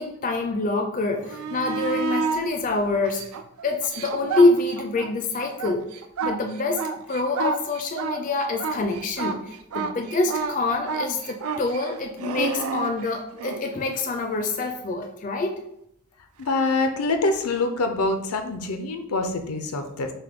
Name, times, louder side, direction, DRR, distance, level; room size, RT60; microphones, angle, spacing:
voice 1, 0.0-3.2 3.6-5.8 6.2-6.8 7.1-9.4 9.7-15.6, left 2 dB, 35° left, 4 dB, 0.4 m, -25 dB
sound 1, 1.2-2.4 3.0-5.1 5.4-13.6 16.4-16.5, right 4 dB, 75° right, 0.4 m, -29 dB
voice 2, 16.4-20.1, left 3 dB, 85° left, 6 dB, 0.6 m, -25 dB
5.6 x 2.2 x 3.5 m, 0.77 s
head